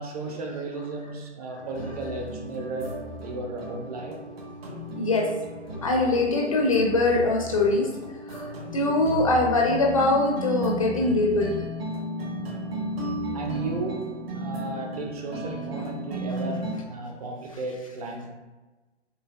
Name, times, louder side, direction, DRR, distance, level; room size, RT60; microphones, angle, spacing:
voice 1, 0.0-4.2 13.3-14.1 14.3-18.3, right 3 dB, 35° right, 2 dB, 0.6 m, -34 dB
sound 1, 1.6-16.7, right 1 dB, 55° right, 1.5 m, -34 dB
voice 2, 5.0-5.3 5.8-7.9 8.3-11.6, left 2 dB, 30° left, 1 dB, 0.4 m, -22 dB
6.3 x 2.5 x 2.4 m, 1.2 s
figure-of-eight pair, 135°, 35 cm